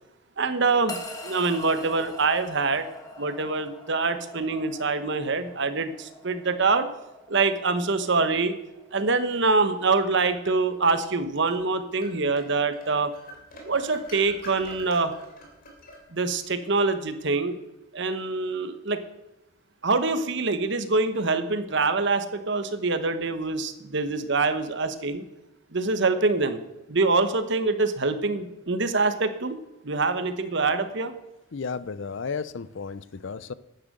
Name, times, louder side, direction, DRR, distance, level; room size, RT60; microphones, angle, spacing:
voice 1, 0.4-2.9 3.2-6.9 7.3-8.5 8.9-13.1 13.6-15.1 16.1-17.6 17.9-19.0 19.8-25.2 25.7-26.6 26.9-29.5 29.8-31.1, right 3 dB, 60° right, 10 dB, 1.1 m, -25 dB
sound 1, 0.9-11.2, left 2 dB, 20° left, 1.7 m, -45 dB
sound 2, 9.6-11.0 11.5-11.6 12.0-16.4, equal, 45° left, 3.1 m, -47 dB
voice 2, 31.5-33.5, left 5 dB, 60° left, 17 dB, 0.5 m, -33 dB
10.0 x 9.5 x 6.7 m, 0.96 s
head